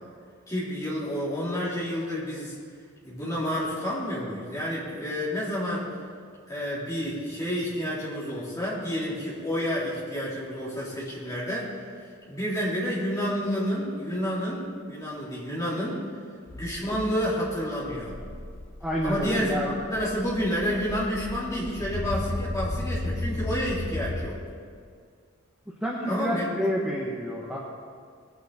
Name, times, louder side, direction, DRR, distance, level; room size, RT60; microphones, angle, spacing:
voice 1, 0.5-2.6 3.0-5.9 6.5-11.7 12.3-16.0 16.5-18.2 19.0-19.6 19.9-24.4 26.1-26.7, equal, 15° left, -8 dB, 3.9 m, -29 dB
sound 1, 16.5-24.3, left 1 dB, 45° left, 0.9 m, -35 dB
voice 2, 18.8-19.8 25.8-27.6, equal, 5° right, -4 dB, 1.1 m, -29 dB
20.5 x 9.4 x 4.3 m, 2.1 s
head